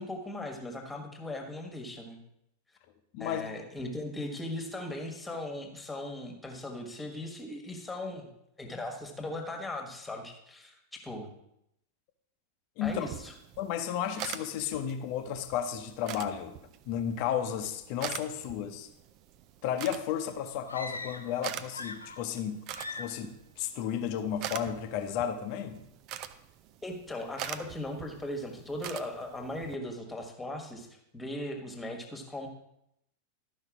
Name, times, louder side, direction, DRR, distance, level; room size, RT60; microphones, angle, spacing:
voice 1, 0.0-2.2 3.2-8.3 8.6-11.3 12.8-13.3 26.8-30.9 31.1-32.5, left 1 dB, 10° left, 3 dB, 1.5 m, -38 dB
voice 2, 3.1-3.4 12.8-13.1 13.6-16.6 16.9-18.9 19.6-25.8, left 9 dB, 45° left, 8 dB, 0.9 m, -33 dB
sound 1, 12.8-29.8, right 11 dB, 40° right, 0.5 m, -44 dB
sound 2, 20.7-21.4 21.7-22.4 22.7-23.3, left 3 dB, 85° left, 0.6 m, -41 dB
12.0 x 5.4 x 4.8 m, 0.80 s
figure-of-eight pair, 90°, 0 cm